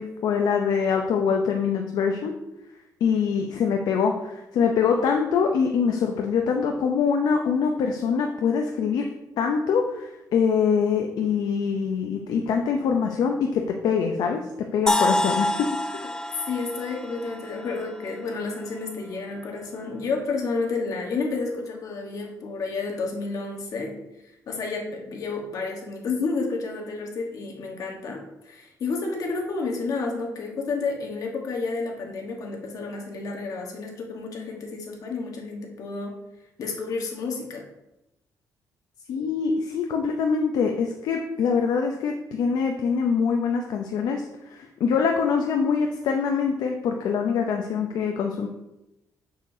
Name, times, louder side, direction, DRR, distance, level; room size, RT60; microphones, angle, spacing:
voice 1, 0.0-2.3 3.0-9.0 9.4-14.4 14.7-15.7 39.1-44.2 44.5-48.5, left 6 dB, 75° left, 2 dB, 0.6 m, -24 dB
sound 1, 14.9-18.8, left 1 dB, 10° left, 0.4 m, -27 dB
voice 2, 16.5-23.9 24.5-36.2 36.6-37.6, left 4 dB, 60° left, 1 dB, 1.3 m, -30 dB
6.6 x 6.4 x 2.7 m, 0.92 s
cardioid pair, 145°, 7 cm